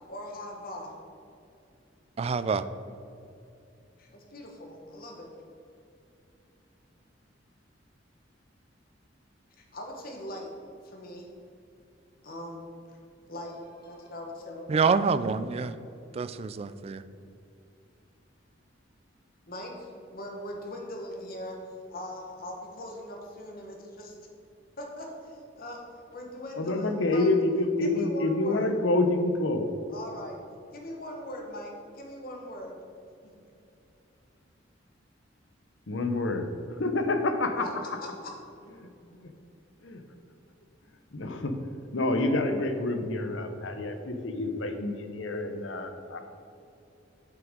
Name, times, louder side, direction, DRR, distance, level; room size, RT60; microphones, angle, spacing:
voice 1, 0.1-0.9 4.0-5.3 9.6-10.5 10.8-11.3 12.2-13.0 13.3-14.7 19.5-21.6 21.9-24.1 24.8-25.8 26.1-27.3 27.8-28.7 29.9-30.4 30.7-32.8 33.2-33.3 37.6-38.3, left 1 dB, 50° left, 1 dB, 1.4 m, -40 dB
voice 2, 2.2-2.6 14.7-15.7 16.1-17.0, right 5 dB, 35° right, 13 dB, 0.3 m, -26 dB
voice 3, 26.6-29.7 35.9-36.5 36.8-37.6 38.8-38.9 39.2-39.3 39.8-40.0 41.1-41.6 41.9-46.2, left 2 dB, 90° left, 7 dB, 0.9 m, -27 dB
7.6 x 6.1 x 5.1 m, 2.6 s
head